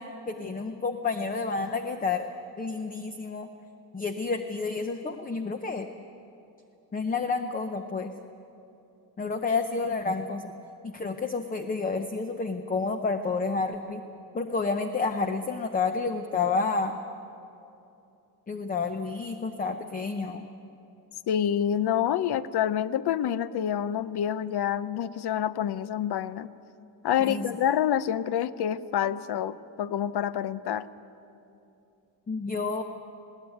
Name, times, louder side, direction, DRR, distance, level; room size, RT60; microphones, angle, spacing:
voice 1, 0.0-2.3 2.6-3.5 3.9-5.9 6.9-8.1 9.2-10.5 10.8-14.0 14.3-17.0 18.5-20.4 27.2-27.5 32.3-32.8, left 4 dB, 20° left, 7 dB, 0.6 m, -30 dB
voice 2, 21.3-26.5 27.0-30.9, left 10 dB, 65° left, 15 dB, 0.7 m, -27 dB
20.5 x 17.5 x 9.2 m, 2.8 s
wide cardioid pair, 180°, 42 cm